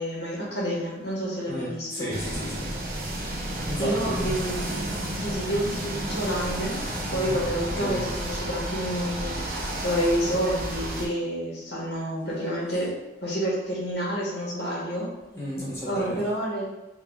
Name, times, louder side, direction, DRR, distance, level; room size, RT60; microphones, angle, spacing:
voice 1, 0.0-2.1 3.8-4.7 5.1-6.8 7.1-12.9 13.2-15.1 15.9-16.7, equal, 65° left, -5 dB, 1.3 m, -29 dB
voice 2, 1.5-2.8 3.7-4.3 7.1-7.4 7.8-8.0 15.3-16.2, equal, 15° left, -7 dB, 0.9 m, -33 dB
sound 1, 2.1-11.1, right 1 dB, 50° right, 0.5 m, -31 dB
3.4 x 2.3 x 3.5 m, 0.97 s
head